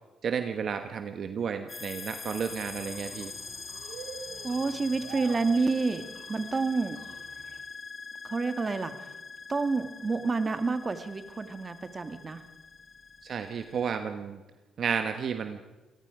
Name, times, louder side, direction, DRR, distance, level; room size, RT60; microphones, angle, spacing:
voice 1, 0.2-3.3 13.2-14.4 14.8-15.6, right 7 dB, 55° right, 7 dB, 1.3 m, -32 dB
sound 1, 1.7-14.0, left 4 dB, 35° left, 1.4 m, -44 dB
sound 2, 2.3-7.6, right 7 dB, 90° right, 2.6 m, -47 dB
voice 2, 4.4-7.0 8.2-9.1 9.5-12.4, right 4 dB, 30° right, 9 dB, 1.9 m, -29 dB
27.5 x 19.0 x 5.0 m, 1.1 s
cardioid pair, 90°, 0 cm